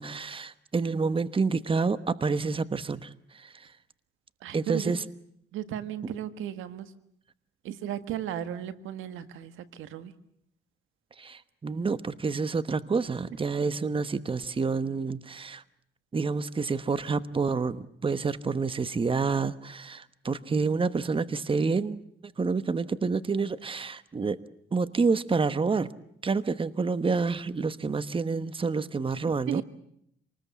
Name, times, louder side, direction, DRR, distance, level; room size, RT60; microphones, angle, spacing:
voice 1, 0.0-3.7 4.5-5.0 11.2-15.6 16.1-24.4 24.7-25.9 26.2-29.6, right 4 dB, 25° right, 14 dB, 1.1 m, -28 dB
voice 2, 4.4-4.9 5.5-6.9 7.6-10.1 29.5-29.6, right 10 dB, 90° right, 12 dB, 1.6 m, -35 dB
27.0 x 20.0 x 8.3 m, 0.72 s
cardioid pair, 90°, 20 cm